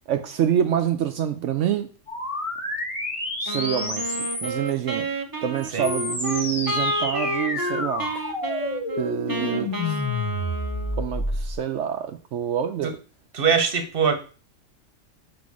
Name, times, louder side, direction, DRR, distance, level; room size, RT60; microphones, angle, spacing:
voice 1, 0.1-1.9 3.4-5.1 5.4-8.3 9.0-10.0 11.0-13.0, right 9 dB, 75° right, 0.9 m, -27 dB
sound 1, 2.1-4.7 5.6-11.5, left 1 dB, 25° left, 1.4 m, -29 dB
Wind instrument woodwind instrument, 3.5-11.1, equal, 20° right, 0.6 m, -30 dB
voice 2, 13.3-14.2, right 6 dB, 50° right, 1.1 m, -21 dB
5.2 x 4.2 x 4.7 m
omnidirectional pair, 1.3 m